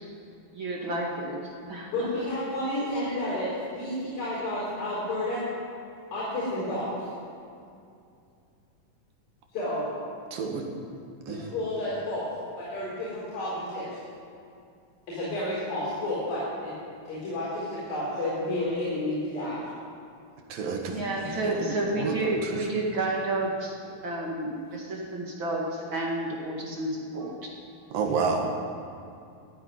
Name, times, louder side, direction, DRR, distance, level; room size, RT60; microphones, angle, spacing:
voice 1, 0.5-2.1 20.9-23.8 24.0-27.3, right 2 dB, 40° right, -2 dB, 2.1 m, -30 dB
voice 2, 1.9-5.4 6.1-6.9 9.5-9.9 11.3-12.3 12.6-14.0 15.1-16.7 17.1-19.6, left 1 dB, 70° left, -9 dB, 6.1 m, -31 dB
voice 3, 10.3-10.6 11.3-11.4 20.5-22.6 27.9-28.5, right 5 dB, 70° right, 2 dB, 3.3 m, -30 dB
15.0 x 9.8 x 9.8 m, 2.5 s
omnidirectional pair, 4.3 m